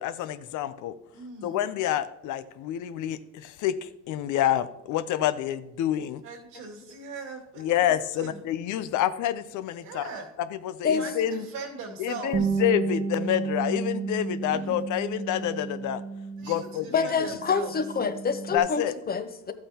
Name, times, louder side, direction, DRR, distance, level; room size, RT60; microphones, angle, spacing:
voice 1, 0.0-0.9 1.4-6.2 7.6-10.0 10.6-11.4 12.0-16.0 16.5-17.3 18.5-18.9, left 11 dB, 75° left, 13 dB, 0.6 m, -28 dB
voice 2, 1.1-1.6 6.2-8.4 9.8-10.3 10.9-12.6 14.5-14.8 16.4-17.7, right 4 dB, 85° right, -1 dB, 2.4 m, -40 dB
Bass guitar, 12.3-17.1 17.4-18.6, right 4 dB, 35° right, 0.8 m, -32 dB
voice 3, 16.9-19.5, left 5 dB, 30° left, 10 dB, 0.8 m, -27 dB
12.5 x 8.7 x 2.9 m, 0.88 s
cardioid pair, 115°, 31 cm